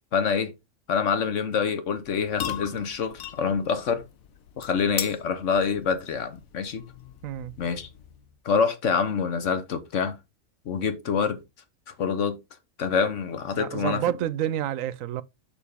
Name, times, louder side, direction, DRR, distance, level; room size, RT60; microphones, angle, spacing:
voice 1, 0.1-0.5 0.9-4.0 4.6-6.8 7.6-7.9 8.4-10.2 10.6-11.4 12.0-12.4 12.8-14.0, left 6 dB, 65° left, 1.4 m, -26 dB
sound 1, 2.0-8.4, left 9 dB, 90° left, 1.2 m, -39 dB
voice 2, 7.2-7.5 13.5-15.2, right 11 dB, 85° right, 1.0 m, -29 dB
6.7 x 5.2 x 3.5 m
omnidirectional pair, 1.4 m